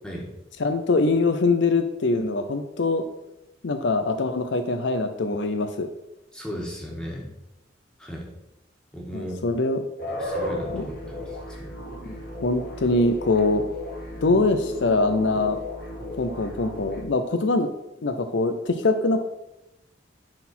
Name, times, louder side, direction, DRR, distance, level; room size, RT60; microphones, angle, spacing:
voice 1, 0.6-3.0 3.6-5.9 9.1-9.8 10.7-10.9 12.1-13.6 14.2-15.6 16.2-17.7 18.0-19.2, left 3 dB, 75° left, 8 dB, 0.6 m, -23 dB
voice 2, 6.3-7.3 8.0-8.3 8.9-9.5 10.2-11.7, equal, 5° left, -2 dB, 1.7 m, -36 dB
sound 1, 10.0-17.0, left 1 dB, 55° left, 2.1 m, -34 dB
10.5 x 4.2 x 4.3 m, 0.90 s
head